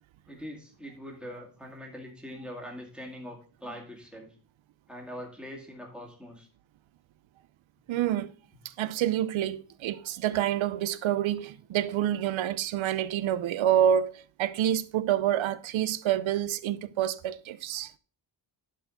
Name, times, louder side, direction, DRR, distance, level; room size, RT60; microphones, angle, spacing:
voice 1, 0.3-4.4 4.9-6.5, equal, ahead, 1.9 m, -42 dB
voice 2, 7.9-8.3 8.8-17.9, right 10 dB, 85° right, 0.6 m, -27 dB
11.5 x 4.9 x 3.7 m
wide cardioid pair, 155°, 46 cm